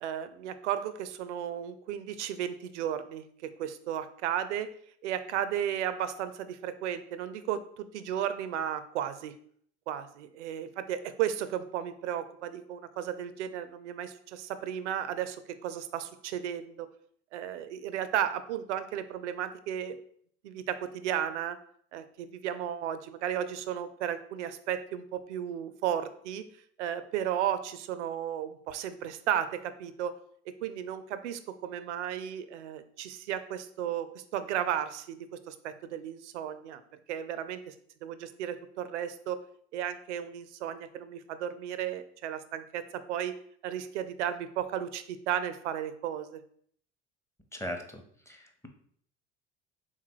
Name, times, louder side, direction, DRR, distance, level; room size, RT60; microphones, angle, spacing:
voice 1, 0.0-4.7 5.0-9.3 9.9-16.9 17.3-20.0 20.4-21.6 21.9-26.4 26.8-30.1 30.5-36.8 37.1-37.7 38.0-39.4 39.7-43.3 43.6-46.4, right 10 dB, 75° right, 12 dB, 0.5 m, -34 dB
voice 2, 47.5-48.0 48.3-48.7, equal, 10° left, 4 dB, 0.7 m, -38 dB
3.5 x 3.0 x 4.5 m, 0.62 s
figure-of-eight pair, 60°, 35 cm